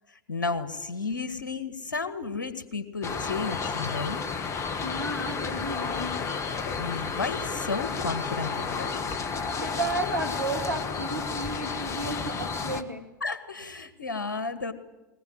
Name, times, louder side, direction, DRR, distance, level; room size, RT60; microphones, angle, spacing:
voice 1, 0.3-4.2 6.7-8.9 13.2-14.7, left 4 dB, 75° left, 10 dB, 1.9 m, -32 dB
sound 1, 3.0-12.8, left 5 dB, 30° left, 1.6 m, -32 dB
voice 2, 4.8-6.3 9.6-13.1, right 2 dB, 90° right, 2 dB, 2.9 m, -33 dB
20.5 x 20.0 x 9.6 m, 1.0 s
figure-of-eight pair, 85°, 10 cm